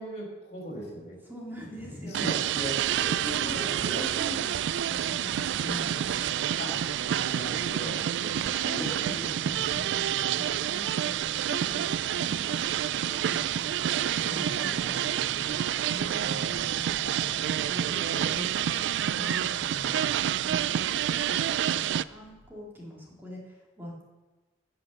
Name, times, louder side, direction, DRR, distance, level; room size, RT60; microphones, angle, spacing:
voice 1, 0.0-1.2 2.0-4.4 5.6-6.0 6.6-6.9 7.1-8.0 8.6-9.3 9.5-9.8 10.1-10.5 14.2-15.3 16.1-16.5 17.0-17.2 17.6-18.2 19.6-20.8, equal, 40° left, -4 dB, 3.5 m, -40 dB
voice 2, 1.3-2.3 3.2-6.9 7.6-18.8 19.1-24.0, equal, 10° right, -3 dB, 2.4 m, -44 dB
sound 1, 2.1-22.0, right 10 dB, 75° right, 0.3 m, -28 dB
sound 2, 2.7-22.5, equal, 55° right, 2.2 m, -59 dB
15.0 x 5.7 x 6.3 m, 1.2 s
head